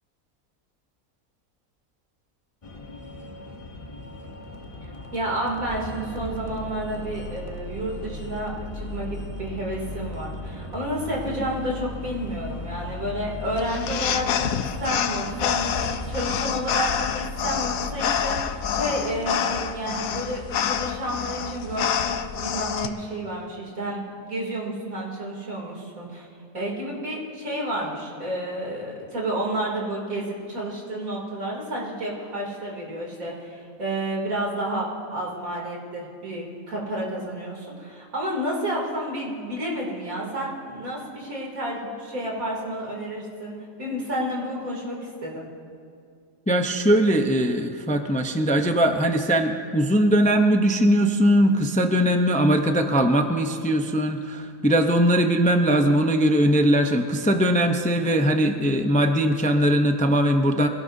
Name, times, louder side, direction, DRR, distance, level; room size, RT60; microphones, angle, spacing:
sound 1, 2.6-16.4, left 2 dB, 25° left, 0.9 m, -42 dB
voice 1, 5.1-24.0 24.3-26.3 26.5-45.4, right 1 dB, 85° right, -3 dB, 3.4 m, -30 dB
sound 2, 5.5-18.8, left 1 dB, 15° right, 3.5 m, -38 dB
sound 3, 13.6-22.9, left 8 dB, 85° left, 1.2 m, -27 dB
voice 2, 46.5-60.7, equal, 10° left, 4 dB, 0.5 m, -20 dB
25.5 x 17.0 x 2.7 m, 2.3 s
omnidirectional pair, 1.4 m